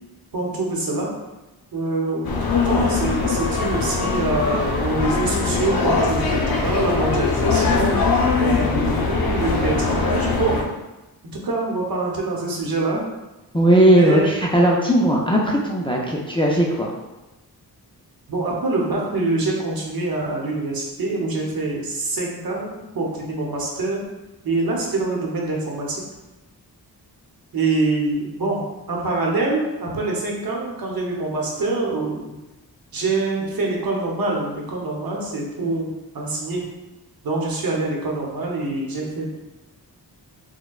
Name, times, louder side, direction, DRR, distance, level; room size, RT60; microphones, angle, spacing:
voice 1, 0.3-1.1 1.7-2.4 2.6-8.0 8.4-10.6 11.4-13.0 13.9-14.3 18.3-24.0 24.4-26.0 27.5-32.3 32.9-35.9 36.1-36.6 37.2-39.4, right 2 dB, 65° right, -2 dB, 0.8 m, -25 dB
sound 1, 2.2-10.6, left 4 dB, 65° left, 0.6 m, -21 dB
voice 2, 13.5-16.9, right 1 dB, 15° left, -3 dB, 0.3 m, -18 dB
4.4 x 2.1 x 2.3 m, 1.0 s
wide cardioid pair, 105°, 38 cm